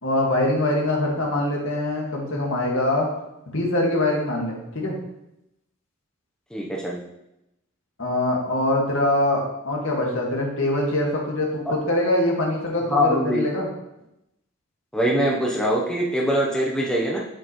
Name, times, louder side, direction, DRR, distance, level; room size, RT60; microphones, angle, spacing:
voice 1, 0.0-3.1 3.5-5.0 8.0-13.7, left 1 dB, 65° left, -1 dB, 1.9 m, -23 dB
voice 2, 6.5-7.0 11.7-11.8 12.9-13.4 14.9-17.2, equal, 5° left, -3 dB, 0.8 m, -23 dB
7.6 x 7.4 x 3.1 m, 0.88 s
head